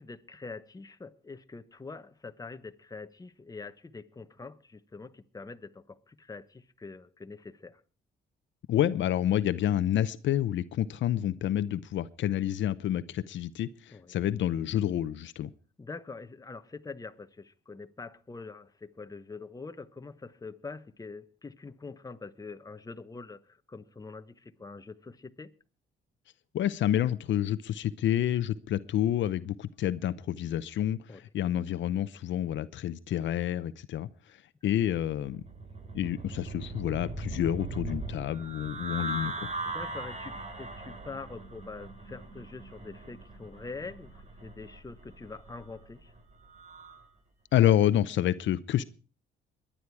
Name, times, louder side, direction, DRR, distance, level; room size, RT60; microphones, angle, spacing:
voice 1, 0.0-7.8 13.9-14.2 15.8-25.5 31.1-31.2 39.6-46.1, left 4 dB, 20° left, 1.0 m, -44 dB
voice 2, 8.7-13.7 14.1-15.5 26.5-31.0 31.3-34.1 34.6-35.4 35.9-39.5 47.5-48.8, left 11 dB, 70° left, 0.7 m, -28 dB
sound 1, 35.2-47.1, right 2 dB, 35° right, 3.1 m, -40 dB
22.0 x 10.0 x 4.7 m
cardioid pair, 90°, 20 cm